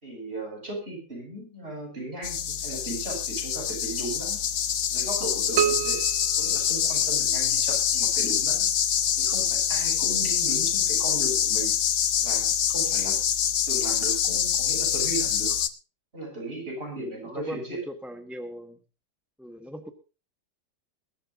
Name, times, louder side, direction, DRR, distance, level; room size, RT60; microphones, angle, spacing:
voice 1, 0.0-4.4 4.9-6.0 6.4-8.7 9.2-11.7 12.2-13.2 13.7-15.6 16.1-17.8, right 1 dB, 30° right, 0 dB, 6.8 m, -36 dB
sound 1, 2.2-15.7, left 9 dB, 55° left, 1.0 m, -25 dB
sound 2, 5.6-7.5, right 10 dB, 90° right, 1.6 m, -29 dB
voice 2, 16.9-18.8 19.4-19.9, equal, ahead, 7 dB, 0.8 m, -39 dB
22.0 x 12.5 x 2.6 m, 0.33 s
omnidirectional pair, 2.0 m